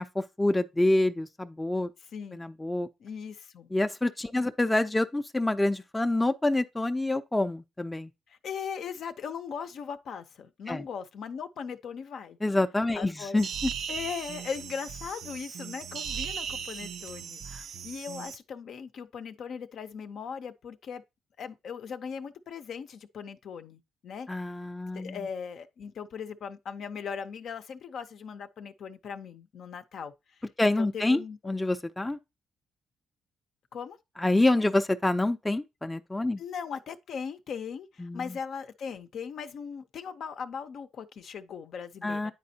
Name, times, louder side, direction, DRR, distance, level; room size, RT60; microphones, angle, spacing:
voice 1, 0.0-1.9 2.3-2.9 3.7-8.1 10.7-10.8 12.4-13.7 24.3-25.2 30.6-32.2 34.2-36.4 38.0-38.4 42.0-42.3, left 2 dB, 15° left, 0.4 m, -27 dB
voice 2, 2.1-2.4 3.0-3.7 4.3-4.4 8.3-12.4 12.9-13.4 13.9-21.0 21.4-24.3 24.9-30.1 30.6-31.6 33.7-34.0 36.4-42.3, left 6 dB, 65° left, 0.5 m, -39 dB
sound 1, 13.4-18.4, right 7 dB, 65° right, 0.4 m, -37 dB
9.6 x 4.2 x 2.7 m
cardioid pair, 90°, 0 cm